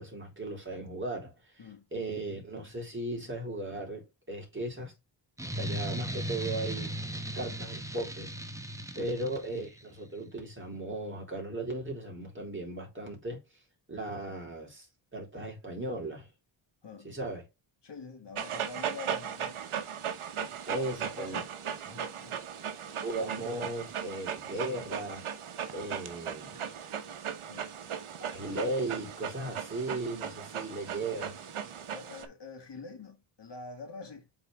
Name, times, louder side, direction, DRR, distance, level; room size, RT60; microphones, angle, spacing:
voice 1, 0.0-1.3 1.9-4.9 5.6-7.0 7.3-8.3 8.9-13.4 13.9-14.9 15.1-16.3 17.0-17.4 20.7-21.4 23.0-25.3 25.7-26.6 28.2-31.4, right 2 dB, 25° right, 3.6 m, -36 dB
sound 1, 5.4-9.8, right 1 dB, 5° right, 1.0 m, -37 dB
voice 2, 16.8-17.1 17.8-19.6 20.4-21.5 21.9-22.4 27.4-27.7 31.9-34.3, left 4 dB, 55° left, 2.0 m, -46 dB
Dog, 18.3-32.3, right 8 dB, 75° right, 1.0 m, -37 dB
7.5 x 4.0 x 3.4 m
cardioid pair, 65°, 49 cm